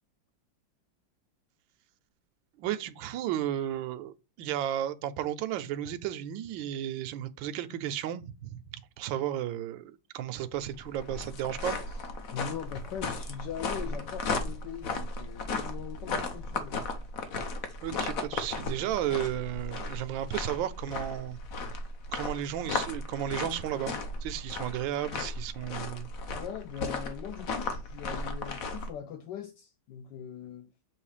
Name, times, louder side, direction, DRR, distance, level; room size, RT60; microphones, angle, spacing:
voice 1, 2.6-11.8 17.8-21.4 22.1-24.0 24.2-26.1, right 11 dB, 80° right, 1.3 m, -33 dB
sound 1, 10.6-28.9, left 3 dB, 55° left, 1.1 m, -36 dB
voice 2, 12.3-16.8 26.3-30.7, left 9 dB, 70° left, 1.2 m, -41 dB
7.0 x 3.0 x 4.9 m
omnidirectional pair, 2.1 m